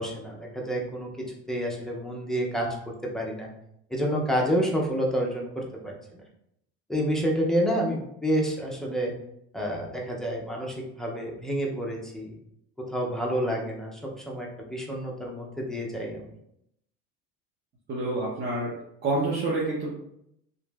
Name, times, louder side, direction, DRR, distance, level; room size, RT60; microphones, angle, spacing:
voice 1, 0.0-3.5 3.9-6.2 6.9-9.1 9.5-12.3 12.8-16.3, equal, ahead, -2 dB, 0.4 m, -29 dB
voice 2, 17.9-18.7 19.0-19.9, right 2 dB, 35° right, -5 dB, 0.7 m, -27 dB
2.8 x 2.6 x 2.2 m, 0.76 s
supercardioid pair, 120°, 30 cm